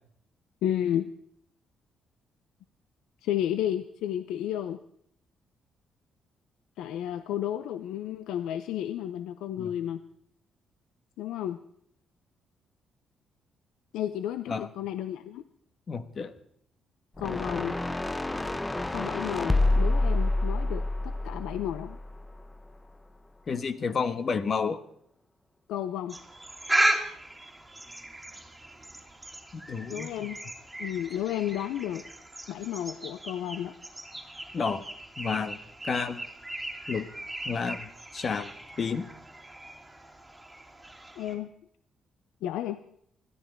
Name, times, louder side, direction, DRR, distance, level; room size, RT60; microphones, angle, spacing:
voice 1, 0.6-1.1 3.2-4.8 6.8-10.0 11.2-11.6 13.9-15.4 17.2-17.8 18.9-22.0 25.7-26.2 29.9-30.4 30.8-32.0 32.5-33.7 41.2-41.5 42.4-42.8, left 11 dB, 90° left, 11 dB, 0.6 m, -32 dB
voice 2, 15.9-16.3 23.5-24.8 29.5-30.3 34.5-34.8 35.2-35.6 35.8-36.2 36.9-37.1 37.4-38.5 38.8-39.1, left 5 dB, 45° left, 11 dB, 1.3 m, -31 dB
sound 1, 17.2-22.4, left 2 dB, 15° left, 0.7 m, -28 dB
sound 2, 26.1-41.3, right 1 dB, 10° right, 2.8 m, -36 dB
20.5 x 14.0 x 4.6 m, 0.68 s
cardioid pair, 90°, 0 cm